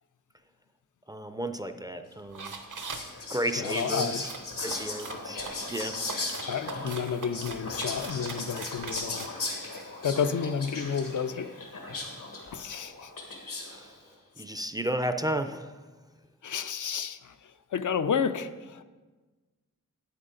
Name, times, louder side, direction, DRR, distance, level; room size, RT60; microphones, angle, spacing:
voice 1, 1.1-2.5 3.3-4.3 4.6-5.4 5.7-6.0 13.7-13.9 14.4-15.7, right 1 dB, 10° right, 8 dB, 0.4 m, -32 dB
sound 1, 2.3-3.1 4.2-9.3, right 4 dB, 70° right, 0.9 m, -41 dB
Whispering, 2.5-13.9, left 3 dB, 85° left, 1.6 m, -37 dB
voice 2, 3.6-4.2 6.5-9.3 10.0-11.5 12.5-13.1 16.4-18.8, left 6 dB, 65° left, 10 dB, 0.5 m, -31 dB
8.7 x 8.1 x 3.8 m, 1.3 s
wide cardioid pair, 85°, 33 cm